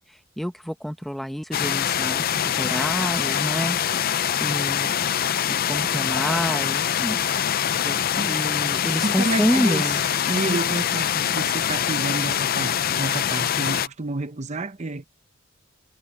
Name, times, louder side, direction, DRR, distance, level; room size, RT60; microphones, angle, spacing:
voice 1, 0.4-4.9 5.6-7.2 7.8-8.0 8.3-10.1, equal, ahead, 1.4 m, -28 dB
sound 1, 1.5-13.9, left 9 dB, 50° left, 0.5 m, -24 dB
voice 2, 9.0-9.9 10.3-15.0, right 2 dB, 35° right, 0.9 m, -29 dB
head